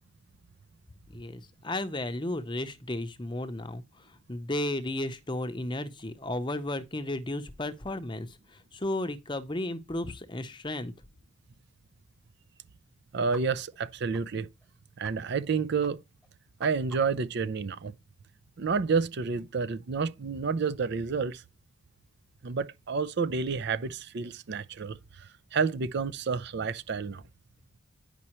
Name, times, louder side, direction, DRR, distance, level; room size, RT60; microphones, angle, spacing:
voice 1, 1.1-10.9, left 1 dB, 20° left, 0.7 m, -34 dB
voice 2, 13.1-14.5 15.0-16.0 16.6-17.9 18.6-21.4 22.4-27.2, right 5 dB, 50° right, 0.5 m, -30 dB
sound 1, 13.3-13.4 13.7-13.8 14.1-14.2 14.6-14.7 15.0-15.1 15.4-15.5 15.8-15.9 16.2-17.3, right 2 dB, ahead, 1.0 m, -49 dB
9.7 x 5.5 x 3.0 m
head